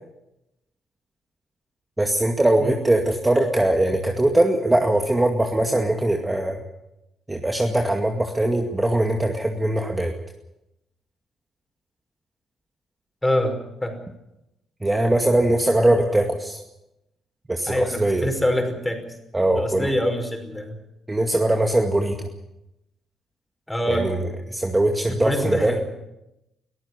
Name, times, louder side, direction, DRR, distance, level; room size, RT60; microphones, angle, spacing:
voice 1, 2.0-6.6 7.3-10.1 14.8-16.6 17.5-18.3 19.3-19.9 21.1-22.3 23.9-24.2 24.5-25.8, right 1 dB, 15° right, 3 dB, 2.2 m, -21 dB
voice 2, 13.2-13.5 13.8-13.9 17.7-19.0 19.5-20.8 23.7-24.3 25.1-25.8, equal, 10° left, 5 dB, 5.5 m, -25 dB
23.0 x 14.0 x 9.8 m, 0.90 s
cardioid pair, 90°, 0 cm